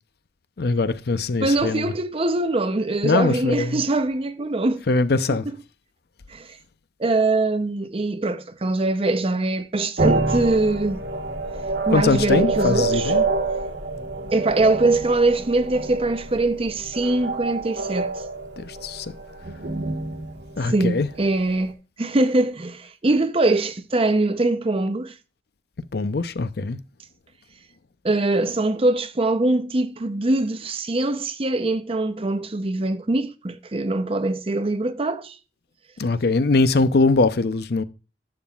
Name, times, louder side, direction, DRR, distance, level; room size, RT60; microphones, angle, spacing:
voice 1, 0.6-1.9 3.0-3.8 4.9-5.5 11.9-13.3 18.6-19.1 20.6-21.1 25.9-26.8 36.0-37.8, left 3 dB, 60° left, 0.6 m, -22 dB
voice 2, 1.4-4.8 6.3-6.5 7.0-11.0 11.9-13.1 14.3-18.1 20.6-21.7 22.0-25.1 28.0-35.4, right 2 dB, 35° right, 0.7 m, -22 dB
sound 1, 10.0-21.4, right 3 dB, 75° right, 1.4 m, -27 dB
11.0 x 7.4 x 2.4 m
head